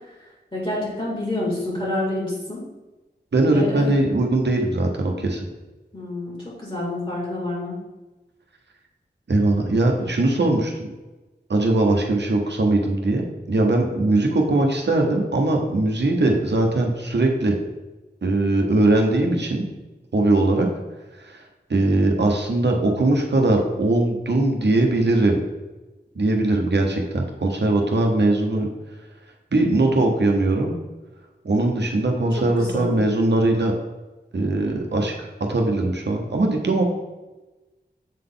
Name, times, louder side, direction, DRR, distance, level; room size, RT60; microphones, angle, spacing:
voice 1, 0.5-2.6 3.4-3.9 5.9-6.4 6.6-7.8 32.4-32.9, left 1 dB, 35° left, -5 dB, 2.1 m, -28 dB
voice 2, 3.3-5.4 9.3-10.7 11.5-13.2 13.5-17.5 18.2-19.6 20.1-20.7 21.2-21.4 21.7-25.4 26.1-28.7 29.5-30.7 31.4-33.7 34.3-36.8, right 2 dB, 85° right, 2 dB, 0.9 m, -20 dB
7.5 x 3.9 x 3.8 m, 1.1 s
wide cardioid pair, 60°, 18 cm